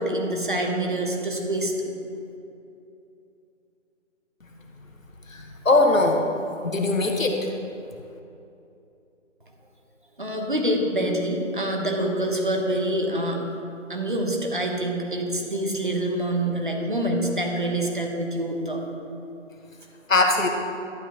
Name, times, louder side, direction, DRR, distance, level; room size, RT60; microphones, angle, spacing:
voice 1, 0.0-1.9 10.2-13.4 13.9-18.8, right 1 dB, 40° right, 1 dB, 1.2 m, -26 dB
voice 2, 5.3-6.4 6.6-7.5 20.1-20.5, left 2 dB, 85° left, 3 dB, 1.4 m, -21 dB
12.0 x 8.9 x 3.0 m, 2.7 s
figure-of-eight pair, 175°, 39 cm